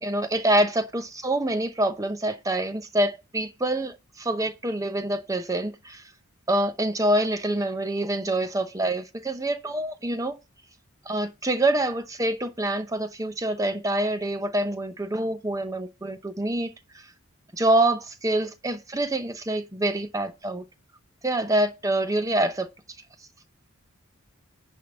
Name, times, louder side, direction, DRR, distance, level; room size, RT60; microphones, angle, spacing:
voice 1, 0.0-6.0 6.5-10.4 11.1-16.7 17.5-20.6 21.2-22.7, right 1 dB, 15° right, 0.8 m, -26 dB
10.0 x 3.5 x 6.5 m
head